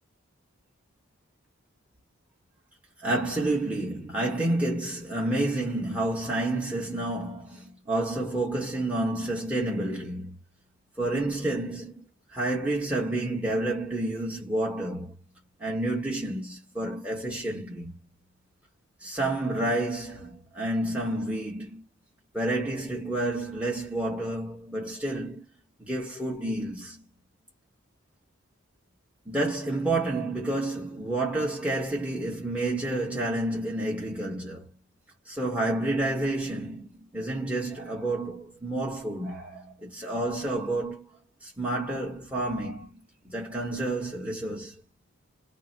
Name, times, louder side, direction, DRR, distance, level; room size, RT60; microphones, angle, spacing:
voice 1, 3.0-10.3 11.0-12.0 12.3-15.1 15.6-17.9 19.0-21.8 22.3-25.4 25.8-27.0 29.3-34.7 35.3-41.0 41.4-43.0 43.3-44.8, right 2 dB, 5° right, 1.0 m, -29 dB
2.8 x 2.1 x 4.0 m
head